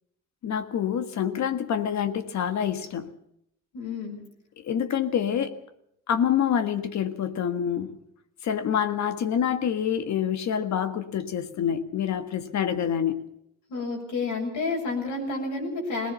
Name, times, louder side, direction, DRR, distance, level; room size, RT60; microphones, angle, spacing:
voice 1, 0.4-3.1 4.6-5.6 6.1-8.0 8.4-13.3, left 8 dB, 65° left, 1.7 m, -27 dB
voice 2, 3.7-4.3 13.7-16.1, left 3 dB, 80° left, 7.1 m, -30 dB
20.0 x 19.0 x 7.0 m
cardioid pair, 90°, 30 cm